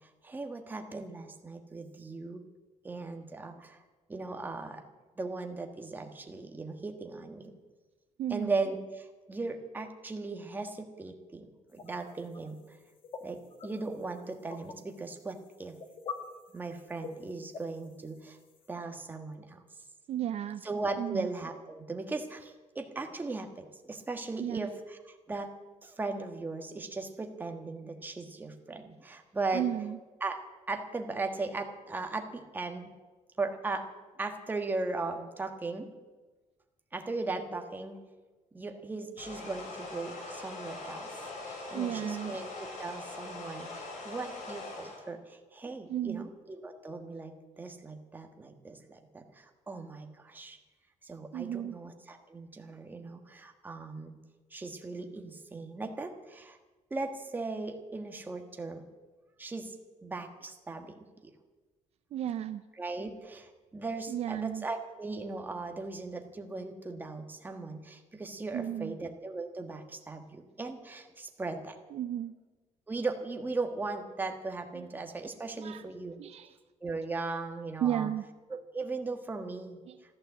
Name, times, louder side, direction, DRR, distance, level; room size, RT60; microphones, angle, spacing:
voice 1, 0.0-2.4 2.8-3.8 4.1-4.8 5.2-7.5 8.3-12.8 13.2-15.8 16.5-18.4 18.7-19.6 20.6-25.5 25.8-29.7 30.2-30.4 30.7-32.9 33.4-33.9 34.2-35.9 36.9-38.0 38.5-41.2 41.4-50.6 51.0-54.1 54.5-56.6 56.9-58.8 59.4-59.7 60.0-61.3 62.8-71.8 72.9-76.2 76.8-78.1 78.5-79.8, right 3 dB, 15° right, 4 dB, 1.4 m, -38 dB
voice 2, 8.2-8.5 20.1-20.7 21.0-21.3 24.4-24.7 29.5-30.0 41.7-42.3 45.9-46.3 51.3-51.8 62.1-62.6 64.1-64.6 68.5-69.0 71.9-72.3 74.7-74.9 75.6-75.8 76.2-76.5 77.8-78.2 79.9-80.0, right 11 dB, 55° right, 11 dB, 0.5 m, -33 dB
sound 1, 11.7-18.7, left 5 dB, 45° left, 1.5 m, -47 dB
sound 2, 39.2-45.0, left 3 dB, 70° left, 4.6 m, -42 dB
14.5 x 12.0 x 8.0 m, 1.3 s
cardioid pair, 175°, 13 cm